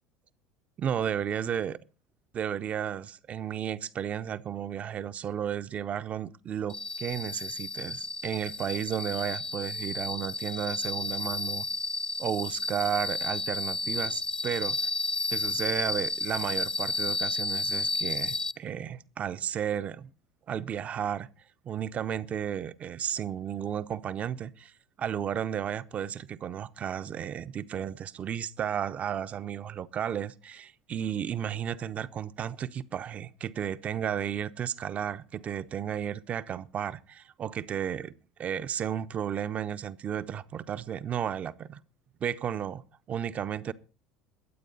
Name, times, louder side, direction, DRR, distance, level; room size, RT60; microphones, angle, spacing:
voice 1, 0.8-1.8 2.3-11.7 12.2-14.8 15.3-20.1 20.5-21.3 21.6-24.7 25.0-38.1 38.4-41.8 42.2-43.7, right 9 dB, 40° right, 0.9 m, -33 dB
sound 1, 6.7-18.5, left 3 dB, 20° left, 0.7 m, -32 dB
22.5 x 8.4 x 4.1 m
hypercardioid pair, 75°, 4 cm